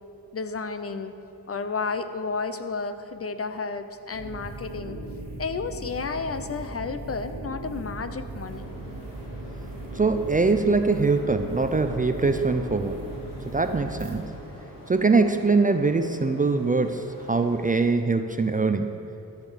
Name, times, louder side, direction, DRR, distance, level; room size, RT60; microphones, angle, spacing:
voice 1, 0.3-1.1 1.5-5.0 5.4-8.7, left 4 dB, 35° left, 10 dB, 0.6 m, -32 dB
sound 1, 4.1-14.1, right 2 dB, 90° right, 1.9 m, -38 dB
sound 2, 8.5-17.7, equal, 55° left, 2.6 m, -46 dB
voice 2, 9.9-13.0 13.5-14.3 14.9-18.9, right 3 dB, 20° right, 7 dB, 0.5 m, -23 dB
13.5 x 6.5 x 5.1 m, 3.0 s
cardioid pair, 75°, 40 cm